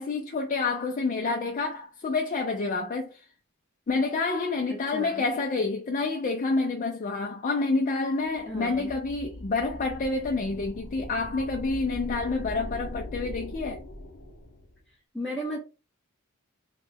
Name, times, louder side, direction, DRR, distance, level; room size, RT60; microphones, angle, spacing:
voice 1, 0.0-3.2 3.9-13.8, left 3 dB, 35° left, 0.4 m, -28 dB
voice 2, 4.7-5.2 8.5-8.9 15.1-15.6, right 1 dB, 5° left, 0.8 m, -34 dB
sound 1, 8.3-14.8, left 1 dB, 65° left, 0.8 m, -41 dB
3.0 x 2.1 x 3.4 m
head